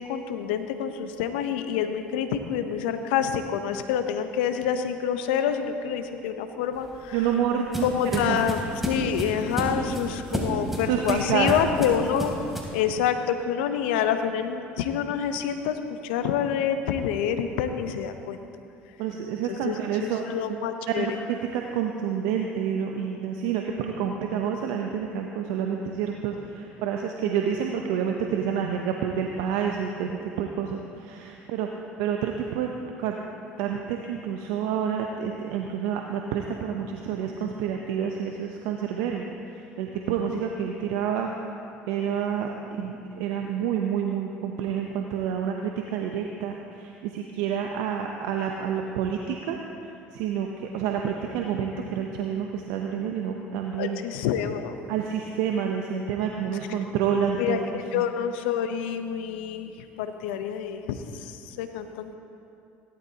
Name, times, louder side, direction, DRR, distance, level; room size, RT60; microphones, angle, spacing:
voice 1, 0.0-7.2 7.8-12.3 12.7-18.4 19.4-21.2 53.8-54.8 56.7-56.8 57.4-62.2, left 8 dB, 80° left, 8 dB, 0.8 m, -27 dB
sound 1, 6.8-12.8, right 1 dB, 5° right, 3.1 m, -31 dB
voice 2, 7.1-8.4 10.9-11.5 19.0-20.2 21.0-32.7 33.0-33.2 33.6-41.3 41.9-49.6 50.1-54.0 54.9-58.0, right 8 dB, 75° right, 2 dB, 0.8 m, -28 dB
17.5 x 12.0 x 2.9 m, 2.6 s
hypercardioid pair, 70°, 6 cm